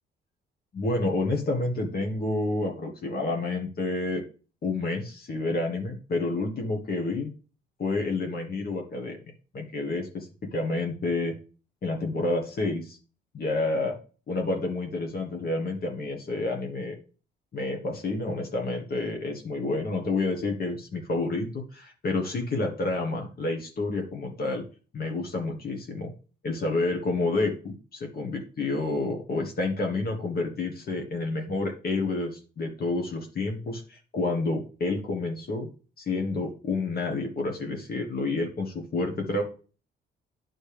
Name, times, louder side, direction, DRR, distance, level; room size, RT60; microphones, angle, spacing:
voice 1, 0.7-4.2 4.6-7.3 7.8-9.2 9.5-11.3 11.8-13.0 13.3-14.0 14.3-16.9 17.5-24.6 24.9-26.1 26.4-35.7 36.0-39.4, left 2 dB, 50° left, 2 dB, 1.5 m, -29 dB
9.8 x 4.3 x 3.4 m, 0.37 s
cardioid pair, 90°, 20 cm